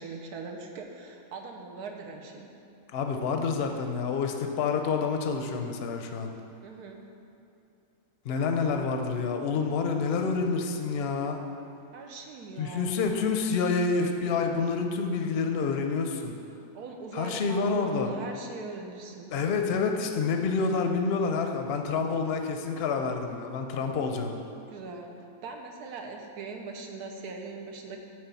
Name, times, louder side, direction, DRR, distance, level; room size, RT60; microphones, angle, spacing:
voice 1, 0.0-2.5 6.6-7.0 11.9-12.9 16.7-19.3 24.7-28.0, right 4 dB, 80° right, 2 dB, 1.3 m, -41 dB
voice 2, 2.9-6.3 8.2-11.4 12.6-16.3 17.1-18.1 19.3-24.3, left 4 dB, 55° left, 4 dB, 0.7 m, -28 dB
9.3 x 3.4 x 6.9 m, 2.7 s
omnidirectional pair, 1.6 m